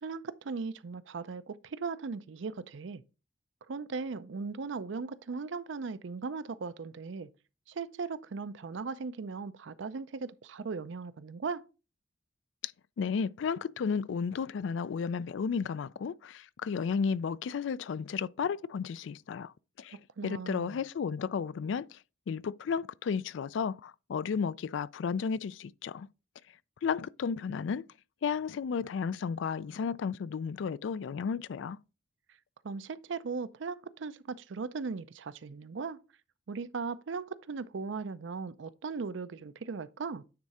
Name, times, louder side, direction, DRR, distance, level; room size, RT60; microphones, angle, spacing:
voice 1, 0.0-3.0 3.7-7.3 7.7-11.6 20.2-20.9 32.6-36.0 36.5-40.2, right 4 dB, 70° right, 0.5 m, -38 dB
voice 2, 13.0-19.5 19.8-20.0 20.2-22.0 22.3-26.1 26.8-27.8 28.2-31.8, left 6 dB, 70° left, 0.3 m, -33 dB
9.5 x 3.6 x 4.2 m
head